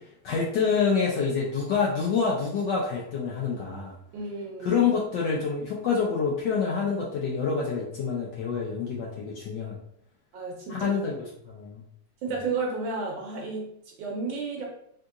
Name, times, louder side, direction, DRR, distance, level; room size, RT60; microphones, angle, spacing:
voice 1, 0.2-3.9 4.6-9.8 10.7-11.8, left 5 dB, 70° left, -3 dB, 1.0 m, -27 dB
voice 2, 4.1-4.8 10.3-10.9 12.2-14.6, right 4 dB, 70° right, -1 dB, 1.2 m, -32 dB
3.6 x 2.8 x 2.4 m, 0.71 s
omnidirectional pair, 2.4 m